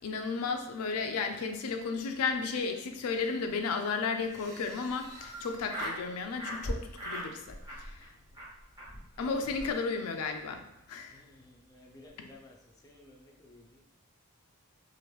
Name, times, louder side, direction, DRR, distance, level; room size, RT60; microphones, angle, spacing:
voice 1, 0.0-7.9 9.2-10.6 10.9-11.2, left 4 dB, 75° left, 5 dB, 0.4 m, -33 dB
sound 1, 2.4-2.5 2.9-3.0 3.4-3.8 4.6-4.8 5.1-5.3 6.0-9.7, equal, 75° right, 1.1 m, -43 dB
Laughter, 4.2-6.0 6.4-6.6 6.9-7.3 7.6-8.1 8.3-8.5 8.8-8.9 9.1-9.2 9.5-9.6 9.9-10.2, equal, 15° right, 0.9 m, -41 dB
voice 2, 11.1-12.6 12.8-13.8, left 2 dB, 15° left, -2 dB, 0.5 m, -55 dB
2.9 x 2.5 x 3.1 m, 0.88 s
head